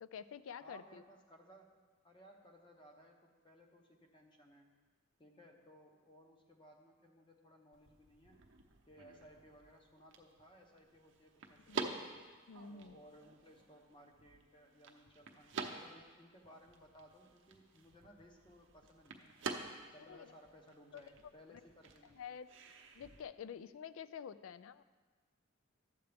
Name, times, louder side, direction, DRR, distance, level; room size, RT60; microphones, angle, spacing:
voice 1, 0.0-1.0 11.7-11.9 12.5-13.0 20.1-20.3 20.9-21.0 21.5-21.6 22.2-22.5 22.9-24.8, left 7 dB, 75° left, 14 dB, 0.3 m, -48 dB
voice 2, 0.6-4.7 5.2-8.4 8.9-12.1 12.7-19.4 19.9-22.2, equal, 25° left, 2 dB, 0.9 m, -61 dB
sound 1, 7.7-23.2, right 4 dB, 60° right, 0.7 m, -49 dB
12.0 x 7.9 x 3.4 m, 1.4 s
head